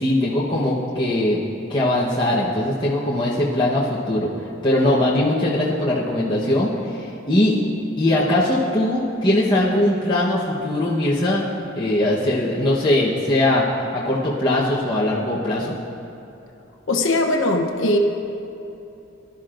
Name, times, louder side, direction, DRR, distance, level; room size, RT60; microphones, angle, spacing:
voice 1, 0.0-1.4 1.7-4.3 4.6-7.6 8.0-13.7 13.9-15.7, left 1 dB, 25° left, -7 dB, 1.0 m, -20 dB
voice 2, 16.9-18.0, left 2 dB, 70° left, 2 dB, 0.8 m, -20 dB
20.0 x 11.5 x 2.5 m, 2.8 s
head